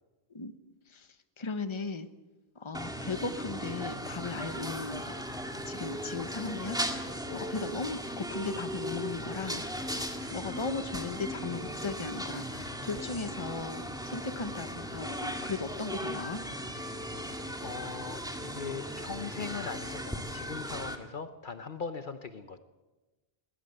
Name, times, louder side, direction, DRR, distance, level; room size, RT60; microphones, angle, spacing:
voice 1, 1.4-2.1 2.6-5.2 5.7-6.8 7.3-9.6 10.3-13.8 14.1-16.4, left 4 dB, 30° left, 10 dB, 1.1 m, -37 dB
sound 1, 2.7-21.0, equal, 5° right, 1.9 m, -37 dB
voice 2, 17.6-22.6, left 5 dB, 55° left, 10 dB, 1.0 m, -40 dB
21.0 x 16.5 x 7.9 m, 1.2 s
omnidirectional pair, 1.0 m